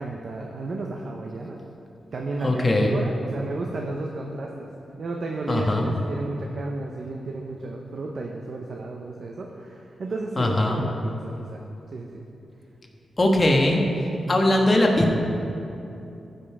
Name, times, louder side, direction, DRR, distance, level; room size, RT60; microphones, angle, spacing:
voice 1, 0.0-1.6 2.1-4.7 5.0-11.6 11.9-12.2, right 2 dB, 60° right, 0 dB, 0.8 m, -33 dB
voice 2, 2.4-2.9 5.5-5.9 10.4-10.8 13.2-13.8 14.3-15.2, left 1 dB, 30° left, 1 dB, 1.4 m, -20 dB
14.0 x 5.6 x 4.8 m, 2.8 s
cardioid pair, 80°, 0 cm